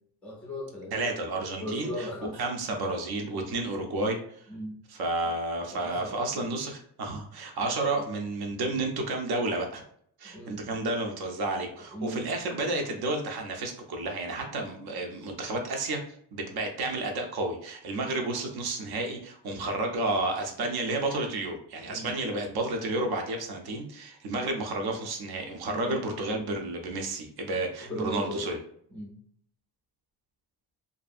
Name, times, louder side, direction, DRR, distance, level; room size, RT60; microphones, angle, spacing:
voice 1, 0.2-1.0 1.6-2.5 4.5-4.8 5.7-6.5 10.3-10.8 11.9-12.3 21.9-22.2 25.6-26.0 27.8-28.5 28.9-29.2, equal, 5° left, -1 dB, 0.3 m, -37 dB
voice 2, 0.9-2.1 2.4-4.5 4.9-9.8 10.2-16.0 16.3-28.6, right 2 dB, 60° right, 3 dB, 0.6 m, -31 dB
2.6 x 2.5 x 2.4 m, 0.64 s
cardioid pair, 175°, 44 cm